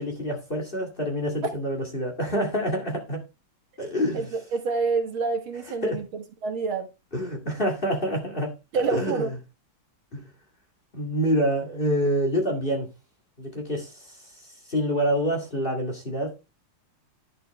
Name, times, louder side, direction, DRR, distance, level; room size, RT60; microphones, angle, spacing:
voice 1, 0.0-3.2 3.8-4.3 5.8-6.0 7.1-9.4 10.1-10.3 10.9-12.9 13.4-16.3, equal, 25° left, 2.1 m, -27 dB
voice 2, 4.5-6.9 8.7-9.3, right 4 dB, 70° right, 2.2 m, -27 dB
10.5 x 6.8 x 3.2 m
omnidirectional pair, 2.4 m